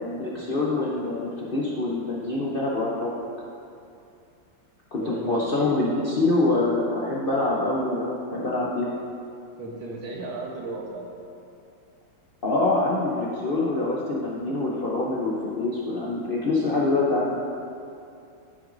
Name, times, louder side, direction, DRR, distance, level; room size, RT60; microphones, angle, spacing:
voice 1, 0.0-3.1 4.9-8.9 12.4-17.4, left 2 dB, 75° left, -5 dB, 0.5 m, -25 dB
voice 2, 5.0-5.5 9.6-11.1, right 2 dB, 75° right, -1 dB, 1.8 m, -35 dB
13.5 x 6.0 x 2.6 m, 2.6 s
omnidirectional pair, 2.1 m